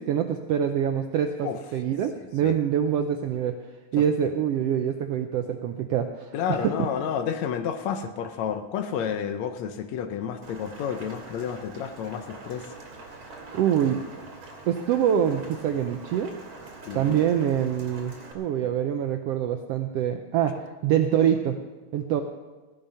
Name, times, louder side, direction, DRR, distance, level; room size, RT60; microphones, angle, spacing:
voice 1, 0.0-3.6 3.9-6.7 13.5-14.0 14.7-16.3 16.9-21.6 21.9-22.2, right 9 dB, 80° right, 6 dB, 1.4 m, -25 dB
voice 2, 6.3-12.7 16.9-17.2, left 8 dB, 70° left, 8 dB, 1.9 m, -30 dB
Rain, 10.4-18.3, right 3 dB, 60° right, 3.3 m, -44 dB
15.5 x 10.5 x 5.5 m, 1.2 s
omnidirectional pair, 3.5 m